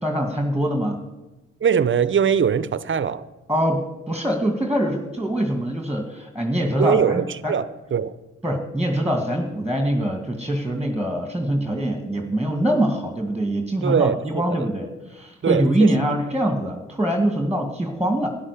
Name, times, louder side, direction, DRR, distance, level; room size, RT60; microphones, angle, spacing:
voice 1, 0.0-1.0 3.5-7.6 8.4-18.3, right 1 dB, 5° right, 2.1 m, -23 dB
voice 2, 1.6-3.2 6.8-8.2 13.8-14.4 15.4-15.9, right 7 dB, 40° right, 0.8 m, -21 dB
13.0 x 10.5 x 6.8 m
supercardioid pair, 55°, 29 cm